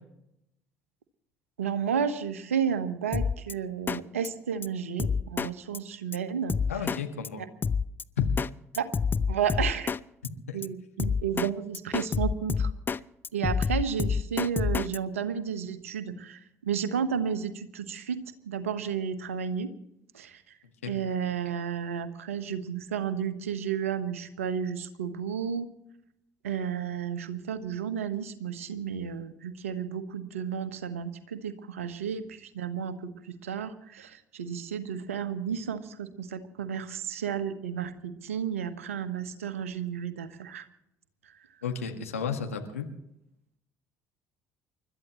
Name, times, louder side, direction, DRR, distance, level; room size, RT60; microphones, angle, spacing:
voice 1, 1.6-6.6 7.4-7.5 8.7-8.9 9.3-9.9 10.5-12.7 13.3-18.2 18.5-19.7 20.1-20.4 20.8-25.7 26.4-40.6, right 7 dB, 80° right, 11 dB, 1.2 m, -32 dB
Drum kit, 3.1-3.5 3.9-4.0 4.2-4.3 4.6-4.7 5.0-5.5 5.7-5.8 6.1-6.2 6.5-7.0 7.2-7.3 7.6-8.5 8.7-10.0 10.2-10.3 10.6-10.7 11.0-11.5 11.7-13.0 13.2-15.0, left 5 dB, 30° left, 0.6 m, -27 dB
voice 2, 6.7-7.4 8.2-8.3 10.5-10.6 20.8-20.9 41.6-42.9, left 7 dB, 85° left, 4 dB, 1.8 m, -33 dB
30.0 x 13.0 x 3.1 m, 0.80 s
figure-of-eight pair, 55°, 7 cm